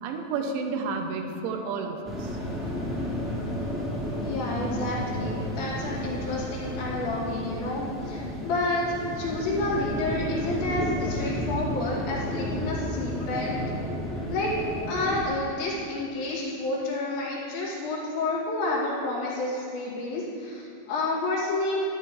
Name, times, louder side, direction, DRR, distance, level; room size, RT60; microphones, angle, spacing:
voice 1, 0.0-2.4, right 4 dB, 85° right, 4 dB, 3.2 m, -31 dB
sound 1, 2.0-15.2, equal, ahead, 1.0 m, -32 dB
voice 2, 4.2-13.6 14.3-14.5 14.9-21.9, left 2 dB, 70° left, -7 dB, 4.6 m, -30 dB
13.5 x 11.5 x 3.2 m, 2.6 s
omnidirectional pair, 5.4 m